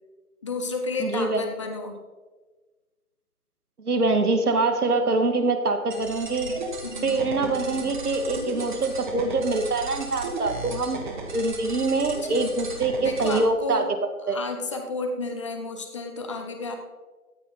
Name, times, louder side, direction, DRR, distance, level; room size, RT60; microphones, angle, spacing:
voice 1, 0.4-2.0 6.8-7.6 12.3-12.5 13.0-13.9 14.2-16.8, left 3 dB, 20° left, 4 dB, 0.9 m, -32 dB
voice 2, 1.0-1.4 3.8-6.5 7.0-11.0 11.3-13.8 14.3-14.4, right 3 dB, 75° right, 7 dB, 2.1 m, -24 dB
sound 1, 5.9-13.4, right 3 dB, 30° right, 1.6 m, -35 dB
15.0 x 9.6 x 4.0 m, 1.3 s
hypercardioid pair, 165°, 45 cm